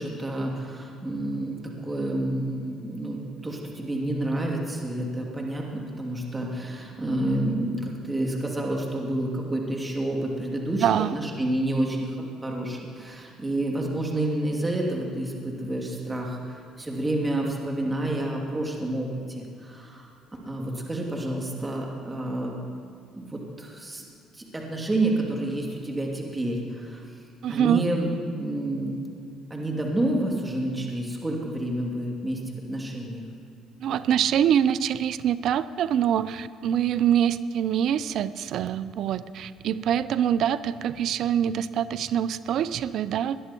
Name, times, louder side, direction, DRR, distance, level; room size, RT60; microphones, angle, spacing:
voice 1, 0.0-10.9 11.1-12.1 12.4-20.1 20.4-22.5 23.1-24.0 24.4-27.0 27.5-28.1 28.4-28.9 29.5-33.2, right 1 dB, 20° right, -1 dB, 2.8 m, -29 dB
voice 2, 10.8-11.2 27.4-27.8 33.8-43.4, right 9 dB, 65° right, 16 dB, 0.5 m, -24 dB
18.5 x 11.0 x 4.5 m, 2.4 s
supercardioid pair, 65°, 0 cm